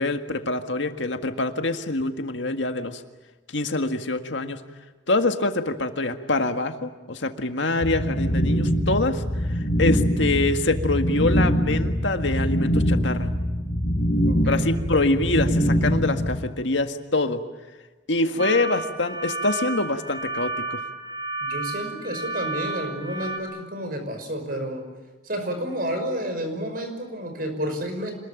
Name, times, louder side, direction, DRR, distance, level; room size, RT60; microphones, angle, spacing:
voice 1, 0.0-3.0 3.5-4.6 5.1-9.2 9.5-13.3 14.5-17.4 18.1-20.8, left 2 dB, 75° left, 7 dB, 1.8 m, -25 dB
sound 1, 7.8-16.4, equal, 45° left, 5.4 m, -23 dB
voice 2, 14.3-14.9 18.3-18.7 21.4-24.9 25.2-28.1, equal, 50° right, 6 dB, 5.6 m, -31 dB
sound 2, 18.4-23.4, right 3 dB, 25° right, 4.8 m, -31 dB
27.0 x 21.0 x 9.1 m, 1.2 s
head